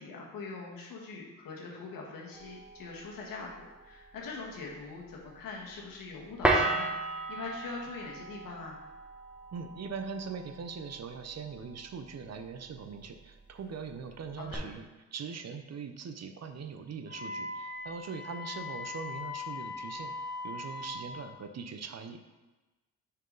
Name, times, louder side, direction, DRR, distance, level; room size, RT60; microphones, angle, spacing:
voice 1, 0.0-8.8 14.4-14.6, left 4 dB, 80° left, -1 dB, 1.5 m, -43 dB
sound 1, 2.3-14.5, right 2 dB, 5° right, 1.1 m, -37 dB
voice 2, 9.5-20.1 20.4-22.2, right 5 dB, 50° right, 8 dB, 0.7 m, -41 dB
Wind instrument woodwind instrument, 17.1-21.1, left 3 dB, 20° right, 1.6 m, -40 dB
6.1 x 4.7 x 3.9 m, 1.2 s
cardioid pair, 75°, 34 cm